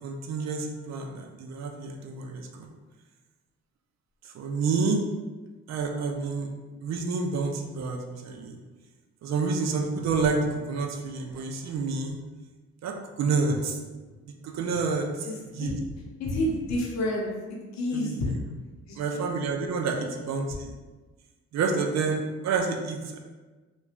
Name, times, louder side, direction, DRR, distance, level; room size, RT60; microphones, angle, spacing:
voice 1, 0.0-2.7 4.2-5.0 5.7-6.5 6.8-8.6 9.2-12.2 12.8-13.8 14.4-15.3 15.5-15.7 17.9-18.2 19.0-20.7 21.5-23.2, right 4 dB, 60° right, 3 dB, 0.5 m, -29 dB
voice 2, 15.2-15.9 16.2-18.3 18.9-19.2 20.0-20.1, left 1 dB, 65° left, -2 dB, 0.7 m, -30 dB
3.0 x 2.2 x 2.4 m, 1.3 s
cardioid pair, 90°, 30 cm